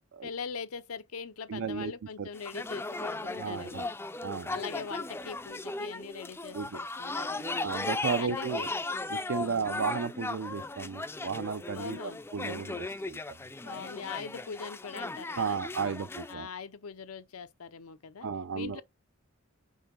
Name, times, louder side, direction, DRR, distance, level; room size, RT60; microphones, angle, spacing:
voice 1, 0.2-3.9 4.5-7.6 8.2-8.7 9.3-9.7 11.7-12.2 13.6-15.6 16.3-18.3 18.5-18.8, left 5 dB, 80° left, 0.6 m, -42 dB
voice 2, 1.5-1.9 2.2-2.3 3.3-3.9 4.2-4.6 6.5-6.8 7.6-8.7 9.1-12.0 12.3-13.4 15.4-16.5 18.2-18.8, right 5 dB, 65° right, 0.5 m, -34 dB
sound 1, 2.3-16.3, left 3 dB, 10° left, 0.4 m, -37 dB
5.5 x 3.7 x 5.9 m
head